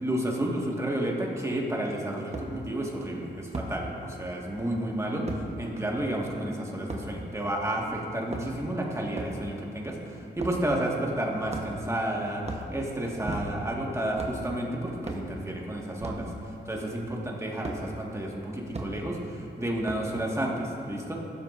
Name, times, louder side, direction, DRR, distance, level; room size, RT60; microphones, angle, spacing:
voice 1, 0.0-16.3 16.6-21.1, right 1 dB, 15° right, -2 dB, 1.7 m, -31 dB
sound 1, 2.3-2.5 3.5-3.7 5.3-5.4 6.9-7.1 8.1-8.7 9.1-9.4 10.4-10.6 11.5-11.9 12.4-12.7 13.2-13.7 14.1-14.4 15.0-15.3 16.0-16.3 17.6-17.8 18.7-18.9 19.8-20.2, right 3 dB, 35° right, 1.1 m, -36 dB
17.0 x 7.5 x 2.6 m, 2.8 s
cardioid pair, 75°, 20 cm